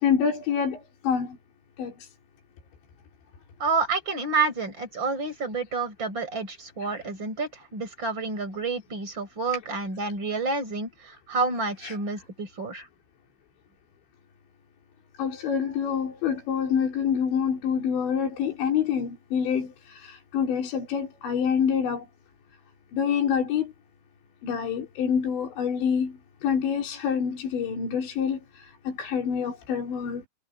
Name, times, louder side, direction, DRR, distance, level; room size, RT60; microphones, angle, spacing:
voice 1, 0.0-1.4 1.8-1.9 6.9-7.0 11.8-12.0 15.2-22.1 22.9-23.7 24.4-30.2, left 7 dB, 80° left, 6.3 m, -27 dB
voice 2, 3.6-12.9, right 4 dB, 25° right, 7.9 m, -29 dB
omnidirectional pair, 5.1 m